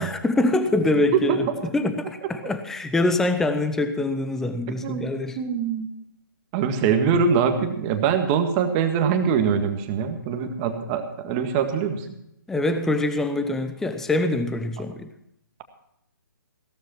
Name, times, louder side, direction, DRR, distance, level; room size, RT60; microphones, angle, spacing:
voice 1, 0.0-1.5 1.7-5.4 12.5-15.1, left 2 dB, 5° left, 0.6 m, -24 dB
voice 2, 4.8-5.9 6.5-12.2, right 6 dB, 25° right, 1.8 m, -23 dB
16.5 x 13.0 x 4.4 m
figure-of-eight pair, 140°, 11 cm